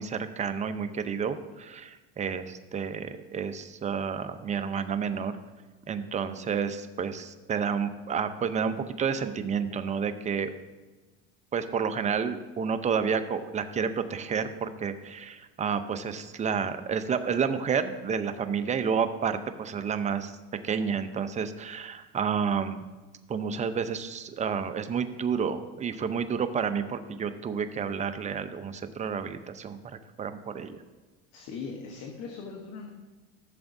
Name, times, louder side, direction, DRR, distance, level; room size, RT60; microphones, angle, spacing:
voice 1, 0.0-5.3 5.9-10.5 11.5-20.4 20.6-22.8 23.3-29.8 30.2-30.8, right 6 dB, 25° right, 10 dB, 0.6 m, -30 dB
voice 2, 31.3-32.9, left 5 dB, 55° left, 2 dB, 1.2 m, -39 dB
14.5 x 7.0 x 2.7 m, 1.2 s
supercardioid pair, 110°, 29 cm